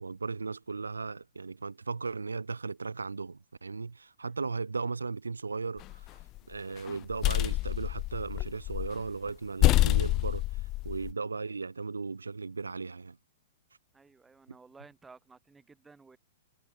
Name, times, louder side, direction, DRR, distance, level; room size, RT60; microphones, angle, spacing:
voice 1, 0.0-6.2 6.5-13.2, right 4 dB, 75° right, 1.0 m, -36 dB
sound 1, 5.8-6.4 6.9-9.0 9.3-9.4 9.6-11.1, left 18 dB, 30° left, 0.4 m, -27 dB
voice 2, 13.9-16.2, right 4 dB, 10° right, 4.3 m, -55 dB
figure-of-eight pair, 110°, 0 cm